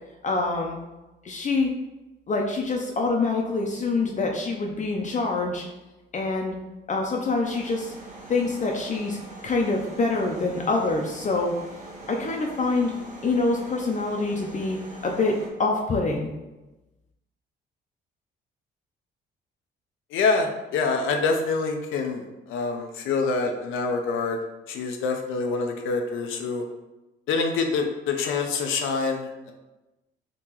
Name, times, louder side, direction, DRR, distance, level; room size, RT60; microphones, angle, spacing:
voice 1, 0.2-0.8 1.2-1.7 2.3-5.6 6.1-6.6 6.9-7.9 8.3-9.2 9.4-11.5 12.1-12.9 13.2-14.8 15.0-16.3, left 3 dB, 40° left, 0 dB, 0.5 m, -25 dB
sound 1, 7.4-15.5, right 2 dB, 40° right, 1.0 m, -43 dB
voice 2, 20.1-24.4 24.7-26.6 27.3-29.5, left 4 dB, 85° left, 3 dB, 0.5 m, -26 dB
3.6 x 2.9 x 2.9 m, 1.0 s
cardioid pair, 90°, 20 cm